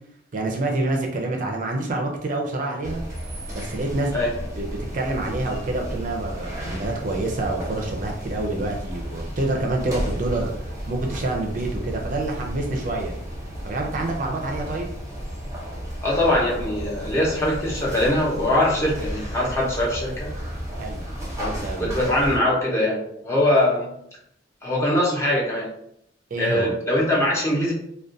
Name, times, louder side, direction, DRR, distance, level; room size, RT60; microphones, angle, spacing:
voice 1, 0.3-3.0 3.5-4.1 4.6-4.7 4.9-13.1 13.6-14.9 20.8-21.0 21.4-21.9 26.3-26.8, right 2 dB, 45° right, 1 dB, 0.4 m, -27 dB
sound 1, 2.8-22.4, equal, 15° right, 0.7 m, -33 dB
voice 2, 16.0-20.3 21.4-21.5 21.8-23.9 24.6-25.7 26.4-27.7, left 1 dB, 15° left, -5 dB, 0.6 m, -22 dB
2.3 x 2.2 x 2.5 m, 0.73 s
head